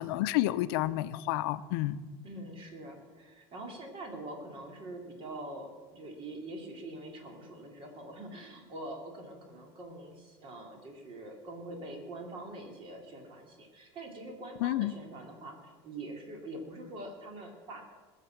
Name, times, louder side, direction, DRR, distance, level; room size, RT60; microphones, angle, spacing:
voice 1, 0.0-2.0 14.6-14.9, left 15 dB, 75° left, 13 dB, 0.7 m, -30 dB
voice 2, 2.2-17.8, right 1 dB, 40° right, 3 dB, 3.0 m, -44 dB
20.5 x 7.4 x 5.9 m, 1.4 s
supercardioid pair, 125°, 13 cm